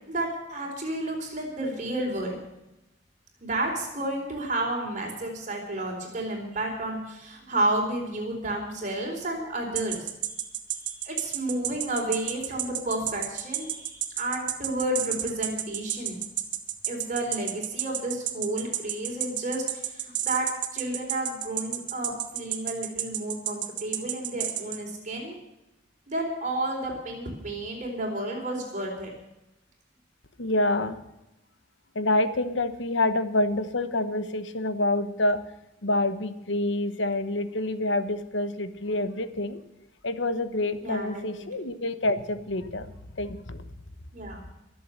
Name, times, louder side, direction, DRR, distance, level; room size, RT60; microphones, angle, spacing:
voice 1, 0.1-2.4 3.4-10.1 10.7-16.2 16.9-20.5 20.7-25.4 26.1-29.1 40.8-41.5 44.1-44.4, right 1 dB, 40° right, 0 dB, 4.5 m, -31 dB
sound 1, 9.8-24.8, right 12 dB, 60° right, 1.4 m, -30 dB
voice 2, 30.4-31.0 31.9-35.4 35.8-39.6 40.0-43.6, left 2 dB, 70° left, 11 dB, 1.1 m, -27 dB
23.0 x 7.8 x 6.7 m, 0.92 s
head